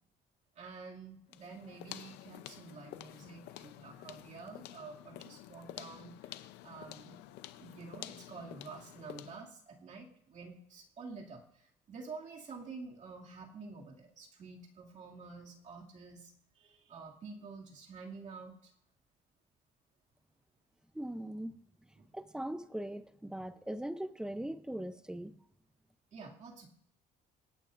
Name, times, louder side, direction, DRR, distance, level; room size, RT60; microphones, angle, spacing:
voice 1, 0.6-7.2 7.6-18.7 22.0-22.1 26.1-26.7, right 4 dB, 45° right, -1 dB, 2.4 m, -49 dB
sound 1, 1.3-9.5, left 14 dB, 90° left, 0.6 m, -50 dB
voice 2, 20.9-21.5 22.1-25.3, right 1 dB, 5° right, 12 dB, 0.6 m, -40 dB
25.0 x 8.9 x 2.5 m, 0.75 s
cardioid pair, 110°, 17 cm